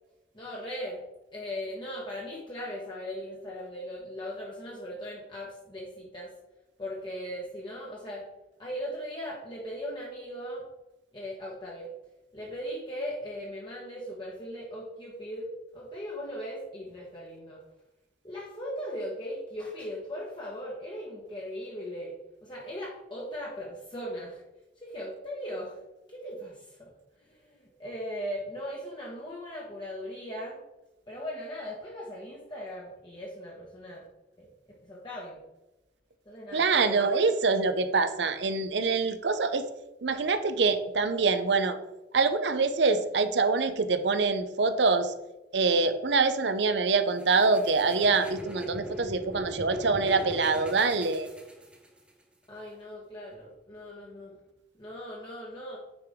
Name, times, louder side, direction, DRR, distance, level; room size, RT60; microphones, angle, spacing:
voice 1, 0.3-1.0 1.3-6.3 6.8-8.3 8.6-10.6 11.1-11.9 12.3-17.6 18.2-22.1 22.4-24.4 24.8-25.8 26.1-30.6 31.1-34.1 34.4-34.5 34.8-35.4 36.2-37.1 52.5-54.3 54.8-55.8, equal, 25° left, -4 dB, 1.2 m, -38 dB
voice 2, 36.5-39.7 40.0-41.8 42.1-45.1 45.5-51.3, right 4 dB, 75° right, 10 dB, 0.7 m, -25 dB
sound 1, 47.2-52.1, right 1 dB, 5° right, 1.0 m, -40 dB
9.1 x 5.0 x 3.6 m, 0.98 s
head